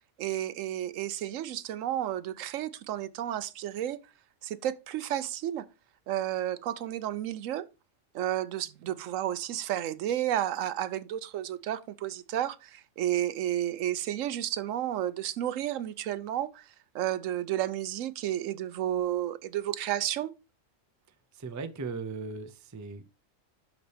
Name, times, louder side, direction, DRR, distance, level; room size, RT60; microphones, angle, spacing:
voice 1, 0.2-4.0 4.4-5.6 6.1-7.7 8.1-16.7 16.9-20.3, right 12 dB, 80° right, 1.0 m, -32 dB
voice 2, 21.3-23.1, right 4 dB, 30° right, 0.3 m, -38 dB
12.0 x 4.1 x 3.4 m
omnidirectional pair, 1.4 m